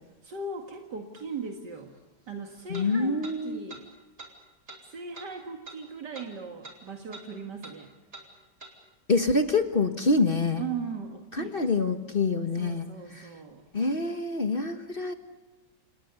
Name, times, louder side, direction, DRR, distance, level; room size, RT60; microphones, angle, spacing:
voice 1, 0.2-2.0 2.3-3.9 4.8-7.9 10.6-11.7 12.5-13.6, right 4 dB, 75° right, 3 dB, 2.5 m, -38 dB
sound 1, 1.2-1.3 2.7-2.9 3.2-3.4 3.7-3.8 4.2-4.3 4.7-4.8 5.1-5.3 5.7-5.8 6.1-6.3 6.6-6.8 7.1-7.3 7.6-7.8 8.1-8.3 8.6-8.7, right 2 dB, 45° right, 4.9 m, -45 dB
voice 2, 2.7-3.7 9.1-10.6 11.3-12.9 13.2-13.3 13.7-15.1, left 3 dB, 35° left, 7 dB, 1.5 m, -26 dB
30.0 x 28.0 x 7.0 m, 1.1 s
omnidirectional pair, 1.9 m